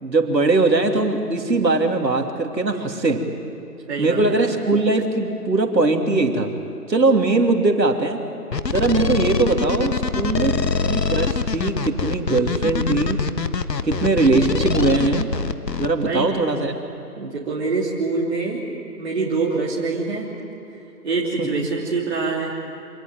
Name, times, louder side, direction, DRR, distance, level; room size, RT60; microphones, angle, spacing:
voice 1, 0.0-3.3 4.0-6.5 6.9-8.2 8.7-13.2 13.8-15.3 15.8-16.7 21.4-21.6, right 3 dB, 90° right, 4 dB, 3.1 m, -20 dB
voice 2, 3.9-4.5 16.0-16.3 17.2-18.6 19.0-20.3 21.0-22.6, right 4 dB, 40° right, -5 dB, 3.3 m, -25 dB
sound 1, 8.5-15.9, left 4 dB, 80° left, 1.4 m, -24 dB
26.5 x 19.0 x 9.1 m, 2.9 s
figure-of-eight pair, 165°, 49 cm